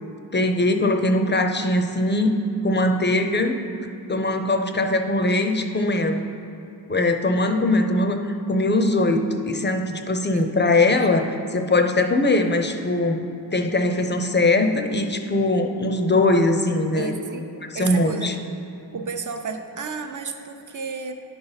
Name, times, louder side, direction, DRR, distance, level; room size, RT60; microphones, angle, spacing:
voice 1, 0.3-2.3 2.6-3.6 4.1-6.3 6.9-13.2 13.5-17.1 17.7-18.3, left 2 dB, 25° left, 6 dB, 0.6 m, -21 dB
voice 2, 10.3-11.1 17.0-17.4 17.7-18.3 18.9-21.1, right 4 dB, 45° right, 5 dB, 0.7 m, -32 dB
10.0 x 5.5 x 4.0 m, 2.8 s
wide cardioid pair, 65°, 44 cm